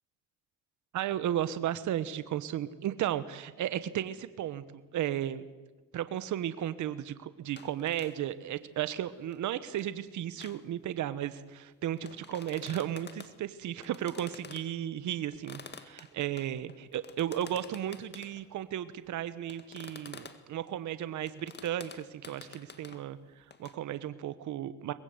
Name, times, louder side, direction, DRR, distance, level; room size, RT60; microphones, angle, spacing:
voice 1, 0.9-4.6 4.9-5.4 5.9-24.9, right 11 dB, 75° right, 13 dB, 1.2 m, -34 dB
sound 1, 7.6-8.2 8.5-8.6 9.0-9.1 9.3-10.0 10.4-10.6 11.2-11.3 12.0-13.4 13.8-14.7 15.2-18.4 19.5-20.4 21.3-23.1 23.5-23.7, left 5 dB, 35° left, 2.0 m, -49 dB
23.5 x 20.5 x 8.0 m, 1.2 s
cardioid pair, 90°, 30 cm